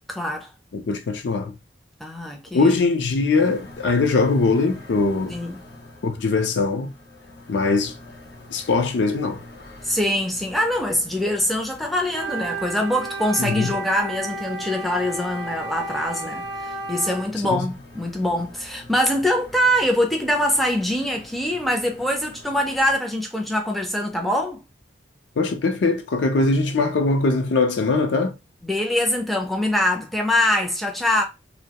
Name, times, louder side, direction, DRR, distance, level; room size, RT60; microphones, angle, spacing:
voice 1, 0.1-0.5 2.0-2.7 5.3-5.6 9.8-24.6 28.6-31.2, left 1 dB, ahead, 0.3 m, -23 dB
voice 2, 0.7-1.5 2.5-5.4 6.0-6.9 7.5-7.9 8.5-9.4 13.4-13.7 17.5-17.7 25.4-28.3, left 3 dB, 80° left, 0.4 m, -21 dB
sound 1, 3.3-23.0, left 2 dB, 60° left, 0.8 m, -46 dB
Wind instrument woodwind instrument, 12.1-17.3, right 2 dB, 60° right, 0.6 m, -32 dB
2.2 x 2.0 x 2.7 m
head